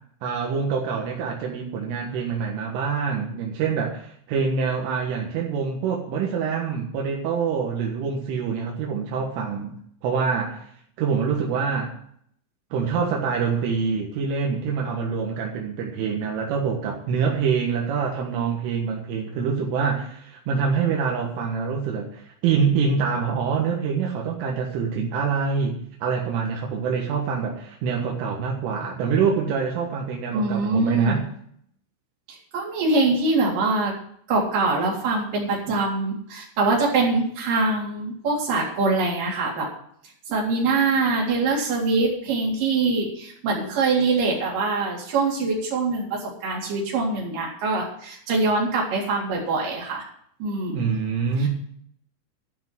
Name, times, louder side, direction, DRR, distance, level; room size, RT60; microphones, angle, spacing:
voice 1, 0.2-9.7 10.0-10.6 11.0-11.9 12.7-25.7 26.0-31.2 50.7-51.5, right 6 dB, 80° right, 0 dB, 4.0 m, -25 dB
voice 2, 30.3-31.2 32.5-33.9 34.3-39.7 40.3-50.0 50.4-50.9 51.4-51.5, right 3 dB, 45° right, -3 dB, 4.9 m, -23 dB
13.0 x 6.2 x 9.1 m, 0.65 s
omnidirectional pair, 5.7 m